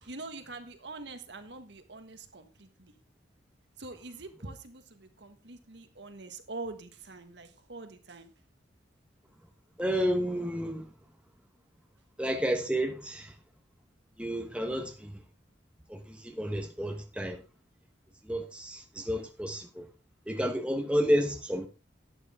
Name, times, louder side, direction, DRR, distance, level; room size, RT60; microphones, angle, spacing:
voice 1, 0.0-3.0 3.8-8.3, right 3 dB, 65° right, 1.5 m, -44 dB
voice 2, 9.8-10.9 12.2-13.3 14.2-15.2 15.9-17.4 18.2-19.9 20.3-21.7, equal, 5° right, 1.1 m, -31 dB
11.5 x 9.7 x 3.6 m
head